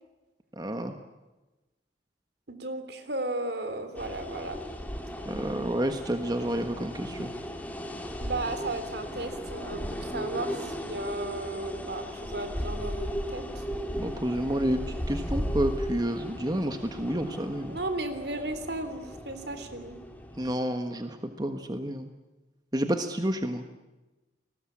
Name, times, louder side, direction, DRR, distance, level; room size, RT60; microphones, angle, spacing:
voice 1, 0.6-0.9 5.2-7.3 13.9-14.8 15.1-17.8 20.4-22.1 22.7-23.6, right 1 dB, 20° right, 7 dB, 1.4 m, -30 dB
voice 2, 2.5-4.6 8.2-13.6 17.7-20.0, right 2 dB, 65° right, 9 dB, 3.4 m, -35 dB
sound 1, 3.9-20.5, equal, 10° left, 2.9 m, -36 dB
29.5 x 20.5 x 8.7 m, 1.1 s
head